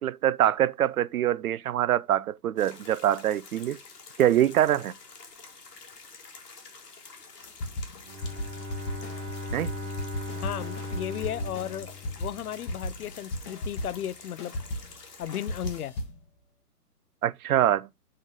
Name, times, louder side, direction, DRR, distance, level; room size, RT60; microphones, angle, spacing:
voice 1, 0.0-3.8 4.2-4.9 9.5-9.7 17.2-17.9, right 12 dB, 65° right, 0.5 m, -24 dB
sound 1, 2.6-15.8, left 4 dB, 90° left, 2.1 m, -48 dB
sound 2, 7.5-14.1 14.4-16.2, left 1 dB, 20° left, 0.9 m, -36 dB
Bowed string instrument, 8.0-12.8, left 3 dB, 15° right, 1.7 m, -38 dB
voice 2, 10.4-11.9 12.2-14.6 15.2-16.0, left 10 dB, 70° left, 0.5 m, -35 dB
5.6 x 3.3 x 5.1 m
hypercardioid pair, 150°, 47 cm